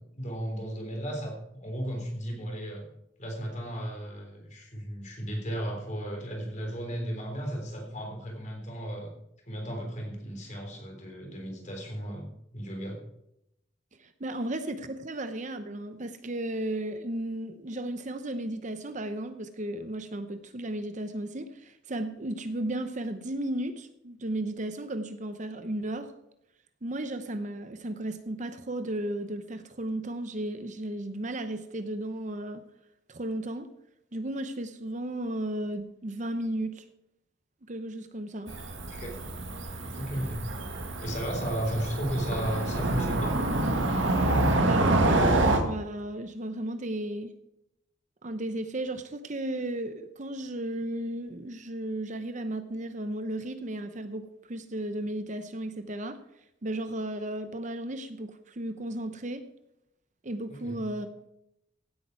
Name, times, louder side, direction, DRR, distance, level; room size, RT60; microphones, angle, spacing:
voice 1, 0.0-2.9 3.2-9.1 9.5-13.0 38.9-39.1 40.0-40.4 41.0-43.4 60.5-60.8, equal, 40° left, 2 dB, 3.6 m, -35 dB
voice 2, 14.0-26.1 26.8-32.6 33.1-33.7 34.1-36.8 37.7-38.5 44.6-47.3 48.2-56.2 56.6-59.4 60.2-61.1, right 1 dB, 40° right, 9 dB, 0.8 m, -34 dB
Cricket / Motor vehicle (road), 38.5-45.6, right 2 dB, 70° right, 1.8 m, -27 dB
16.5 x 8.6 x 4.6 m, 0.81 s
head